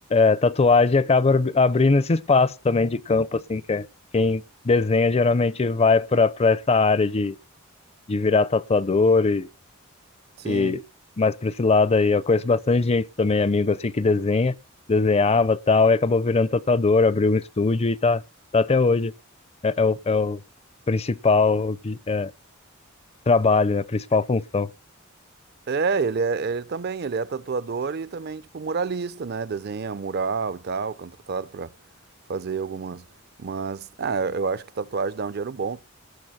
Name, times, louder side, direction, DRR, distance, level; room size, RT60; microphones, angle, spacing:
voice 1, 0.1-3.9 4.1-7.4 8.1-9.5 10.5-10.8 11.2-14.5 14.9-18.2 18.5-19.1 19.6-20.4 20.9-22.3 23.3-24.7, left 3 dB, 30° left, 0.5 m, -20 dB
voice 2, 10.4-10.8 25.7-31.7 32.3-33.0 33.4-35.8, right 5 dB, 50° right, 0.5 m, -28 dB
18.5 x 6.5 x 4.2 m
head